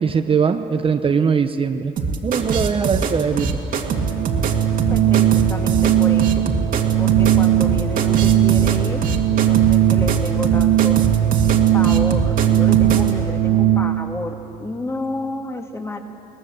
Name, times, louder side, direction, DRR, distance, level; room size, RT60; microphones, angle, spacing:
voice 1, 0.0-1.9 2.2-3.6, right 6 dB, 35° right, 7 dB, 0.8 m, -20 dB
sound 1, 2.0-13.1, right 4 dB, 55° right, 2.1 m, -23 dB
Organ, 3.8-14.2, right 12 dB, 80° right, 0.7 m, -18 dB
voice 2, 4.4-6.5 7.0-9.0 9.5-11.0 11.7-16.0, left 1 dB, 15° left, 4 dB, 1.9 m, -31 dB
22.0 x 19.0 x 7.7 m, 3.0 s
cardioid pair, 110°, 17 cm